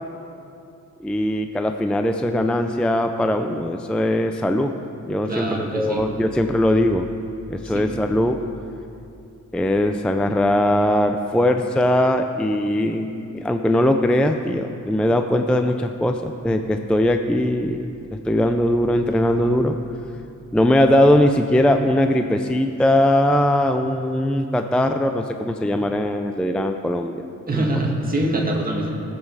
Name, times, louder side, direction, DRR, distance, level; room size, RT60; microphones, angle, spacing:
voice 1, 1.0-4.7 5.0-7.1 7.5-8.4 9.5-13.1 13.3-17.9 18.3-19.8 20.5-27.3 27.5-27.6, left 1 dB, 5° left, 6 dB, 0.4 m, -20 dB
voice 2, 5.2-6.0 7.6-7.8 27.5-28.9, right 1 dB, 30° right, -1 dB, 1.9 m, -24 dB
19.0 x 7.7 x 4.7 m, 2.6 s
wide cardioid pair, 140°, 31 cm